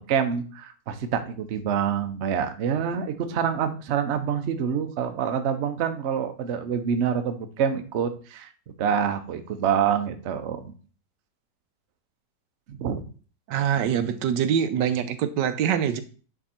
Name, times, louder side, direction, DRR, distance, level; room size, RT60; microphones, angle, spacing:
voice 1, 0.1-8.5 8.8-10.7 12.7-13.0, right 7 dB, 55° right, 8 dB, 0.8 m, -26 dB
voice 2, 13.5-16.0, right 8 dB, 85° right, 10 dB, 1.3 m, -24 dB
9.2 x 3.6 x 4.3 m, 0.39 s
omnidirectional pair, 1.9 m